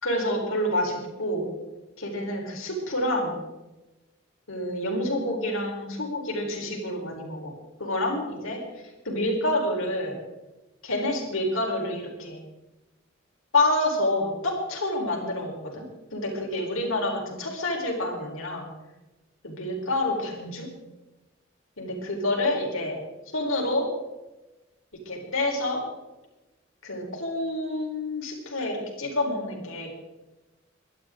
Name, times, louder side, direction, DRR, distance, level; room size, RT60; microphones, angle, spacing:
voice 1, 0.0-1.4 2.0-3.3 4.5-7.5 7.8-8.6 9.0-10.2 10.8-12.4 13.5-15.8 16.1-18.7 19.4-20.7 21.8-23.0 23.3-23.9 25.1-25.8 26.8-29.9, left 1 dB, 85° left, 1 dB, 4.2 m, -28 dB
23.0 x 11.5 x 3.8 m, 1.1 s
head